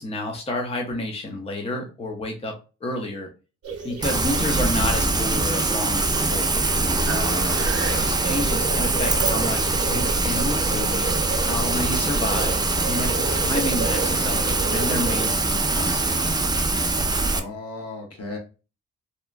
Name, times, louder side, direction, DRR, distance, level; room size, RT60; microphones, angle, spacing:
voice 1, 0.0-2.5 2.8-3.3 3.8-6.5 8.0-11.1 11.4-12.5 12.8-16.3, left 1 dB, 20° left, 1 dB, 0.6 m, -30 dB
sound 1, 3.6-15.3, right 5 dB, 55° right, 0.9 m, -33 dB
Rain, 4.0-17.4, right 2 dB, 15° right, 0.3 m, -23 dB
voice 2, 7.0-8.2 17.3-18.4, left 2 dB, 55° left, 1 dB, 1.1 m, -34 dB
2.8 x 2.2 x 2.4 m, 0.32 s
cardioid pair, 60°, 29 cm